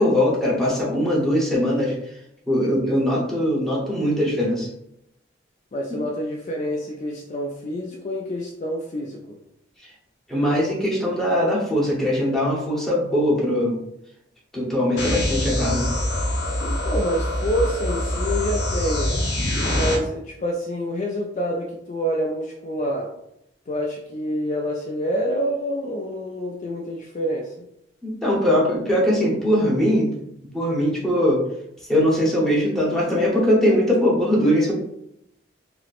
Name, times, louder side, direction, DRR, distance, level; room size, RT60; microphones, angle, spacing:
voice 1, 0.0-1.9 2.5-4.7 10.3-13.8 14.5-15.9 28.0-30.1 30.5-31.4 31.9-34.7, equal, ahead, -5 dB, 0.8 m, -21 dB
voice 2, 5.7-9.4 16.6-19.2 19.7-23.1 23.7-27.7, equal, 40° left, -1 dB, 0.3 m, -27 dB
sound 1, 15.0-20.0, left 1 dB, 70° left, 0.8 m, -24 dB
4.2 x 2.0 x 2.4 m, 0.80 s
head